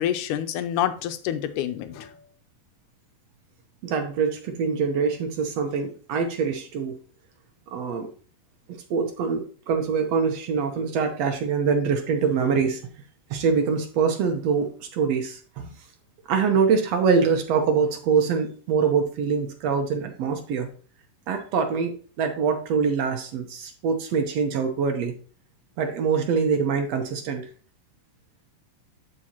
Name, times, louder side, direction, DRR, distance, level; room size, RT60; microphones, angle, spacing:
voice 1, 0.0-2.1, left 11 dB, 75° left, 9 dB, 2.1 m, -27 dB
voice 2, 3.8-7.0 7.7-8.1 8.7-12.8 13.3-15.7 16.3-20.7 21.3-25.1 25.8-27.5, right 5 dB, 70° right, 5 dB, 1.7 m, -24 dB
11.0 x 4.9 x 2.9 m, 0.41 s
omnidirectional pair, 3.8 m